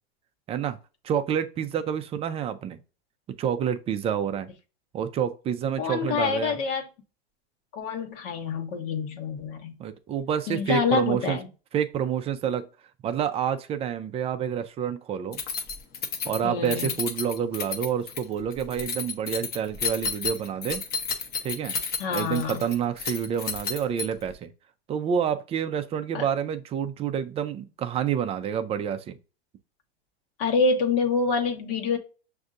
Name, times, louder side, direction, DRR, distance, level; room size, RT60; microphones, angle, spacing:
voice 1, 1.0-2.8 3.4-4.5 4.9-6.6 9.8-11.4 11.7-12.7 13.0-15.4 16.3-20.8 21.4-21.8 22.1-24.5 24.9-29.1, right 8 dB, 20° right, 0.4 m, -28 dB
voice 2, 5.8-6.8 7.7-9.8 10.5-11.5 16.4-17.0 22.0-22.6 26.1-26.2 30.4-32.0, left 4 dB, 60° left, 1.2 m, -26 dB
Keys jangling, 15.3-24.3, left 5 dB, 30° left, 0.8 m, -32 dB
6.3 x 2.7 x 2.4 m
supercardioid pair, 125°, 31 cm